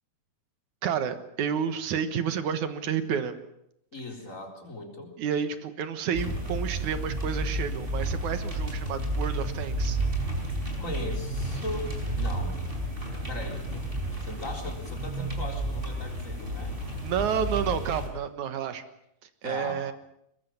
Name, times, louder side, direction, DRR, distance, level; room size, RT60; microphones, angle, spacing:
voice 1, 0.8-3.4 5.2-10.0 17.0-18.8 19.4-19.9, right 8 dB, 70° right, 10 dB, 2.8 m, -30 dB
voice 2, 3.9-5.1 10.8-12.6 13.1-16.8 19.4-19.9, left 2 dB, 25° left, 2 dB, 4.0 m, -38 dB
sound 1, 6.1-18.1, right 1 dB, 15° right, 4.6 m, -31 dB
22.5 x 21.5 x 7.2 m, 0.77 s
omnidirectional pair, 3.7 m